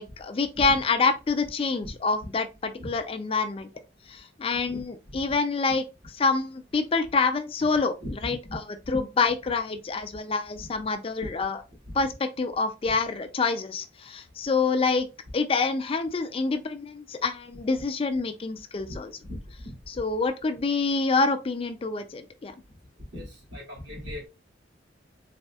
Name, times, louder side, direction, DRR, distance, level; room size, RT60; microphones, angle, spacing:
voice 1, 0.0-3.7 4.1-7.9 8.2-8.6 8.9-11.6 11.9-15.1 15.3-19.1 19.9-22.5, left 4 dB, 30° left, 0.4 m, -27 dB
voice 2, 4.6-5.2 8.0-8.4 11.2-11.3 12.9-13.0 18.9-19.7 23.1-24.3, left 1 dB, 60° right, 2.4 m, -39 dB
4.1 x 3.5 x 2.2 m
head